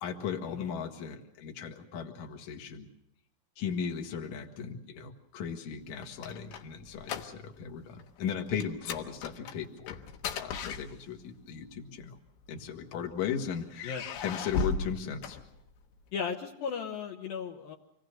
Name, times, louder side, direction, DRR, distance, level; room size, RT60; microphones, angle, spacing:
voice 1, 0.0-2.9 3.6-10.0 10.4-12.2 12.5-13.9 14.2-15.4, left 7 dB, 55° left, 3 dB, 2.6 m, -37 dB
unlock and open door, 5.8-7.7 8.0-8.2 8.6-11.4 12.3-13.1 13.7-16.0, left 4 dB, 90° left, 3.3 m, -37 dB
voice 2, 16.1-17.8, left 6 dB, 70° left, 2 dB, 2.8 m, -36 dB
27.0 x 18.5 x 6.6 m, 0.80 s
omnidirectional pair, 4.6 m